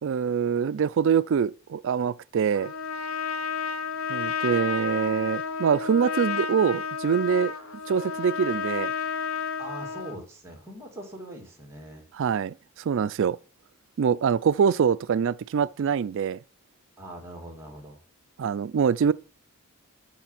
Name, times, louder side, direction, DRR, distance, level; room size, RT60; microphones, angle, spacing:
voice 1, 0.0-2.7 4.1-7.5 7.9-8.9 12.1-13.4 14.0-16.4 18.4-19.1, right 7 dB, 55° right, 0.3 m, -24 dB
Trumpet, 2.5-10.2, left 6 dB, 60° left, 0.9 m, -31 dB
voice 2, 9.6-12.1 17.0-18.0, right 1 dB, 10° right, 2.7 m, -41 dB
7.0 x 6.9 x 5.9 m
head